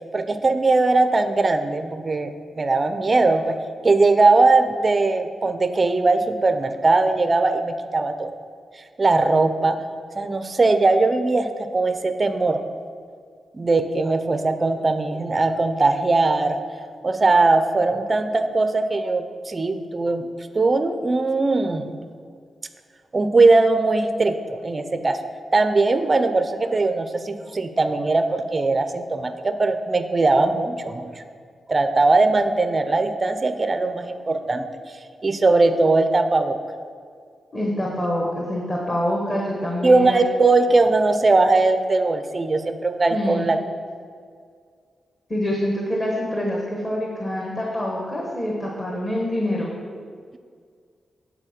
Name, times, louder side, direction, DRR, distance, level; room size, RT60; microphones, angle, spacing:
voice 1, 0.1-3.5 3.8-8.3 9.0-9.8 10.2-12.6 13.5-16.6 17.0-20.3 20.5-21.9 23.1-25.2 25.5-31.2 31.7-34.7 35.2-36.6 39.8-43.6, right 3 dB, 25° right, 8 dB, 0.5 m, -20 dB
voice 2, 37.5-40.2 43.1-43.5 45.3-49.7, left 1 dB, 20° left, -3 dB, 1.1 m, -26 dB
9.0 x 4.2 x 7.3 m, 2.1 s
wide cardioid pair, 160°, 0 cm